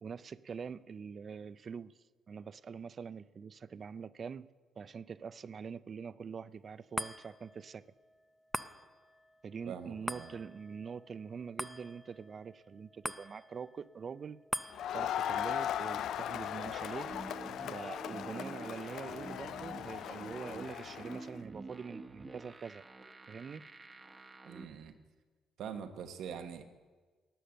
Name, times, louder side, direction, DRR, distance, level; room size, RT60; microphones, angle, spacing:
voice 1, 0.0-1.9 2.3-4.5 4.8-7.9 9.4-14.4 14.9-17.1 17.7-22.8 23.3-23.7, right 6 dB, 45° right, 0.4 m, -44 dB
sound 1, 7.0-19.5 20.0-20.1, equal, 5° left, 0.5 m, -46 dB
voice 2, 9.7-10.3 24.4-24.9 25.6-26.6, right 7 dB, 75° right, 1.1 m, -43 dB
Crowd, 14.7-21.3, left 10 dB, 75° left, 0.3 m, -38 dB
sound 2, 16.7-24.6, right 3 dB, 25° right, 1.1 m, -49 dB
11.5 x 9.2 x 7.7 m
cardioid pair, 90°, 0 cm